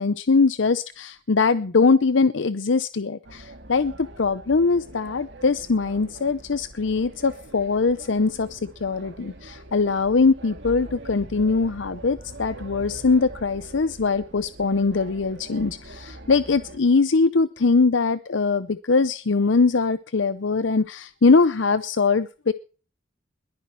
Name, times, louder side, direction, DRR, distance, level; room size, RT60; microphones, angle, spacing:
voice 1, 0.0-22.5, left 4 dB, 75° left, 14 dB, 0.7 m, -22 dB
sound 1, 3.2-16.8, right 1 dB, 65° right, 2.4 m, -43 dB
21.5 x 10.5 x 4.6 m, 0.38 s
head